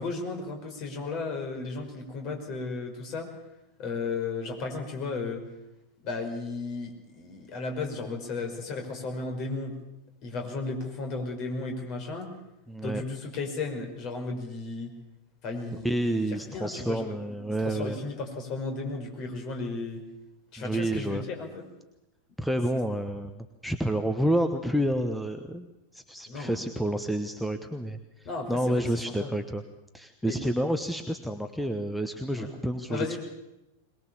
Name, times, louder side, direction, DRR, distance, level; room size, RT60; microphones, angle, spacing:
voice 1, 0.0-3.3 3.8-5.4 6.0-9.7 10.2-12.3 12.8-14.9 15.4-17.2 17.6-20.0 20.5-21.6 26.3-26.6 28.3-28.8 29.2-29.3 30.2-30.4 32.3-32.5 32.9-33.2, left 3 dB, 40° left, 3 dB, 5.2 m, -34 dB
voice 2, 12.7-13.0 15.8-18.0 20.6-21.2 22.4-25.7 25.9-29.6 29.9-33.2, right 1 dB, ahead, 7 dB, 1.2 m, -29 dB
22.0 x 21.0 x 7.2 m, 0.92 s
figure-of-eight pair, 90°, 0 cm